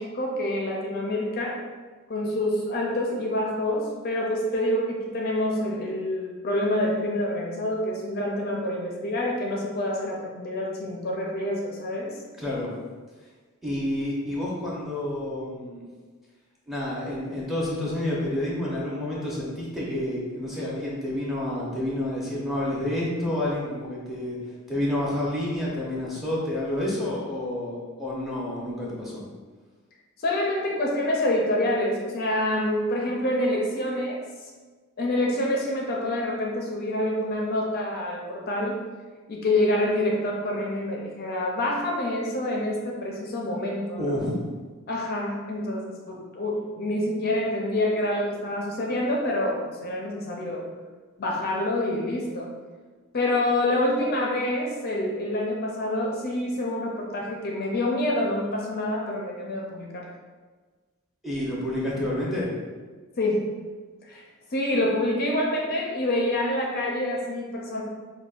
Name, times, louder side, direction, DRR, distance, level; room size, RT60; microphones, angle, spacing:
voice 1, 0.0-1.6 2.1-12.1 30.2-34.5 35.0-38.8 39.3-44.2 44.9-50.6 51.2-52.5 53.1-60.1 63.2-63.4 64.1-64.2 64.5-67.8, left 1 dB, 45° left, -1 dB, 0.4 m, -27 dB
voice 2, 12.4-12.7 13.6-15.8 16.7-24.4 24.7-29.2 44.0-44.4 61.2-62.5, left 1 dB, ahead, -6 dB, 0.7 m, -29 dB
5.0 x 2.2 x 2.4 m, 1.4 s
head